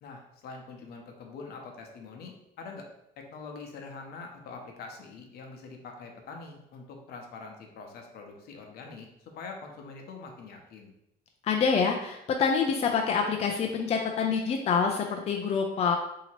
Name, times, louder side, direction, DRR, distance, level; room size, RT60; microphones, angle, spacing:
voice 1, 0.0-2.9 3.2-9.1 9.3-10.9, left 4 dB, 70° left, 2 dB, 0.8 m, -44 dB
voice 2, 11.4-16.0, left 6 dB, 40° left, 2 dB, 0.4 m, -26 dB
2.8 x 2.8 x 4.3 m, 0.84 s
cardioid pair, 110°, 17 cm